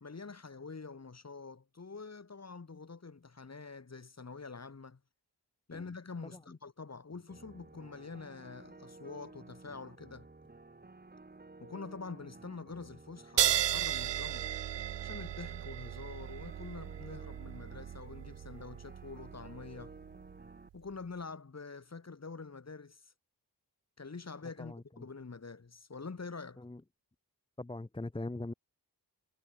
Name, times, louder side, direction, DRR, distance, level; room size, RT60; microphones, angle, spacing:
voice 1, 0.0-5.0 5.7-10.3 11.6-14.5 15.0-19.9 20.7-23.1 24.0-26.6, left 4 dB, 40° left, 1.7 m, -46 dB
sound 1, 7.3-20.7, right 3 dB, 20° right, 1.4 m, -54 dB
sound 2, 13.4-20.4, right 12 dB, 80° right, 0.6 m, -35 dB
voice 2, 24.6-25.1 26.6-26.8 27.6-28.5, left 2 dB, 15° left, 0.8 m, -41 dB
cardioid pair, 55°, 42 cm